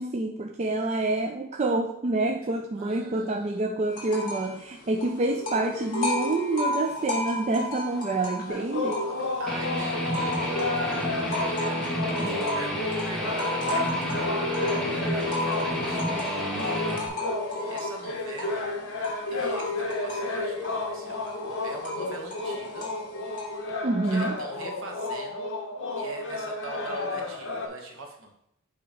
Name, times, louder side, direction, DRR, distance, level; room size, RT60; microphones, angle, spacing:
voice 1, 0.0-9.0 23.8-24.4, right 2 dB, 30° right, 3 dB, 0.4 m, -27 dB
voice 2, 2.8-3.6 9.0-18.7 19.3-22.9 24.0-25.5 26.0-28.3, right 2 dB, 65° right, 1 dB, 1.3 m, -42 dB
sound 1, 3.9-4.5 4.8-9.5 9.9-23.7, left 1 dB, 40° left, 1.8 m, -33 dB
sound 2, 8.5-27.7, left 2 dB, 55° left, 1.1 m, -32 dB
Guitar, 9.5-17.1, equal, 5° left, 1.1 m, -30 dB
7.6 x 3.0 x 5.1 m, 0.76 s
head